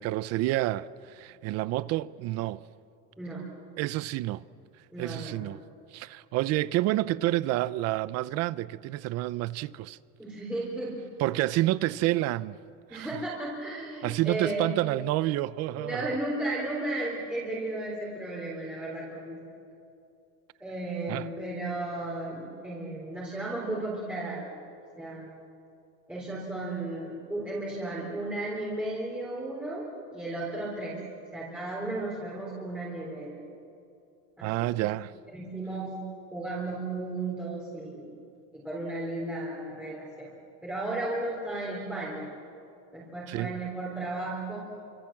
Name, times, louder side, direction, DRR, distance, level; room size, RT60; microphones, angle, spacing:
voice 1, 0.0-2.6 3.8-4.4 5.0-5.6 5.9-10.0 11.2-12.6 12.9-13.1 14.0-16.2 21.1-21.3 34.4-35.1 43.3-43.6, right 16 dB, 45° right, 0.6 m, -29 dB
voice 2, 3.2-3.5 4.9-5.5 10.2-11.0 12.9-14.7 15.7-19.6 20.6-24.5 25.0-25.3 26.1-31.0 31.3-33.4 34.4-34.9 35.3-36.0 36.3-38.1 38.5-40.3 40.6-42.3 42.9-44.6, right 2 dB, 5° right, 3.7 m, -34 dB
29.5 x 26.0 x 7.5 m
cardioid pair, 180°, 35 cm